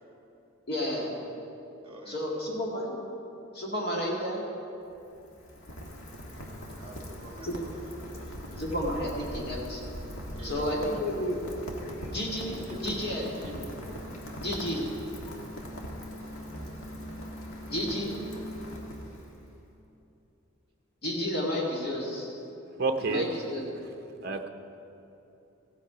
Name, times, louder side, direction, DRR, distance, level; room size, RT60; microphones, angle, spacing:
voice 1, 0.7-1.2 2.1-3.0 3.5-4.4 7.4-7.5 8.6-9.8 10.4-11.4 12.1-13.4 14.4-14.8 17.7-18.2 21.0-22.4 23.1-23.6, left 1 dB, 50° left, -3 dB, 2.1 m, -31 dB
voice 2, 1.8-2.2 6.8-8.6 10.4-11.1 12.6-13.6, left 1 dB, 25° right, 1 dB, 1.5 m, -46 dB
Rain, 4.7-19.5, equal, 75° left, 1.6 m, -41 dB
voice 3, 22.7-23.3 24.2-24.5, right 3 dB, 45° right, 6 dB, 0.6 m, -29 dB
15.5 x 8.4 x 5.0 m, 2.9 s
head